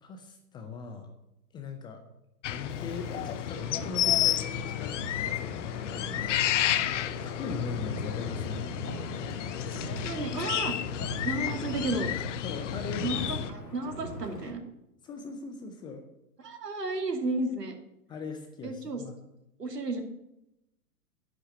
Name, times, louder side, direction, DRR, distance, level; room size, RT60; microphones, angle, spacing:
voice 1, 0.0-1.1 1.5-2.0 2.5-6.3 7.2-8.7 11.4-11.7 12.4-13.5 15.0-16.0 18.1-19.2, left 4 dB, 10° left, 5 dB, 0.5 m, -40 dB
sound 1, 2.4-13.5, left 12 dB, 50° left, 0.7 m, -31 dB
Wind, 2.7-14.5, equal, 80° left, 4.0 m, -41 dB
voice 2, 10.0-10.7 11.2-12.1 13.0-13.2 13.5-14.6 16.4-17.7 18.6-19.0 19.6-20.0, right 2 dB, 80° right, 6 dB, 2.4 m, -32 dB
10.5 x 5.8 x 8.6 m, 0.88 s
figure-of-eight pair, 115°, 48 cm